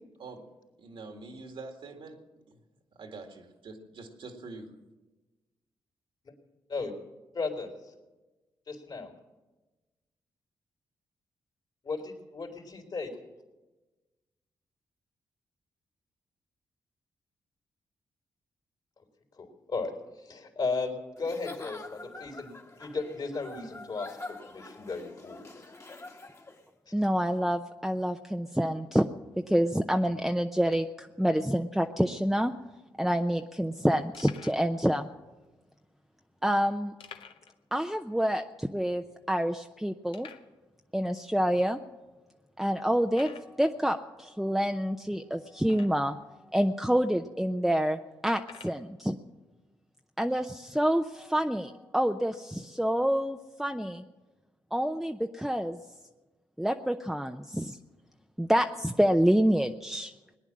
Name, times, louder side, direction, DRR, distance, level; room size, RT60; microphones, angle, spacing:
voice 1, 0.8-2.6 2.9-4.7, right 3 dB, 75° right, 5 dB, 2.0 m, -45 dB
voice 2, 7.3-7.7 8.7-9.1 11.8-13.1 19.4-19.9 20.2-25.4, left 4 dB, 55° left, 3 dB, 3.4 m, -35 dB
Giggle / Chuckle chortle, 21.2-26.7, left 2 dB, 30° left, 1.7 m, -46 dB
voice 3, 26.9-29.1 29.5-32.5 33.0-35.1 36.4-36.9 37.7-40.3 40.9-41.8 42.6-46.2 46.5-49.2 50.2-54.0 54.7-55.8 56.6-57.8 58.4-60.1, equal, ahead, 5 dB, 0.7 m, -27 dB
sound 1, 32.7-32.8 32.9-33.1 33.6-33.7 34.1-34.7 35.4-35.5 37.0-37.6 37.9-38.0 38.4-38.5 39.1-39.2 40.1-40.5 41.3-41.4 42.0-42.1 43.1-43.6 45.6-46.2 47.0-47.1 48.4-48.8, left 6 dB, 70° left, 1.0 m, -49 dB
19.0 x 9.8 x 7.5 m, 1.2 s
supercardioid pair, 55°, 9 cm